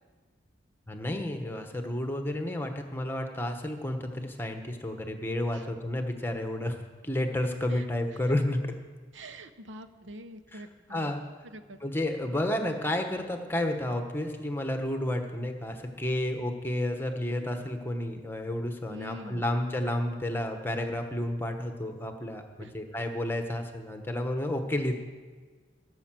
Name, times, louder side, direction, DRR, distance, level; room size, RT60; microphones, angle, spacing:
voice 1, 0.9-6.8 7.0-8.7 10.5-10.6 10.9-11.2 11.8-25.0, left 1 dB, 10° left, 5 dB, 1.1 m, -31 dB
voice 2, 9.1-11.1 11.5-11.8 18.9-19.5 22.6-22.7, equal, 85° right, 9 dB, 0.8 m, -45 dB
16.0 x 6.4 x 7.5 m, 1.4 s
head